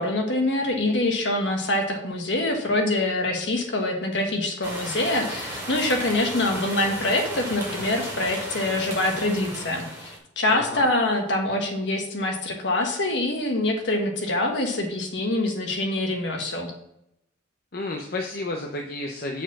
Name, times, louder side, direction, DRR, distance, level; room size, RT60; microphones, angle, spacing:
voice 1, 0.0-16.7, left 2 dB, 65° left, 3 dB, 1.4 m, -25 dB
sound 1, 4.6-10.2, right 1 dB, 10° right, 2.4 m, -35 dB
voice 2, 10.5-10.9 17.7-19.4, left 2 dB, 50° left, 2 dB, 0.7 m, -31 dB
6.8 x 4.6 x 6.0 m, 0.79 s
head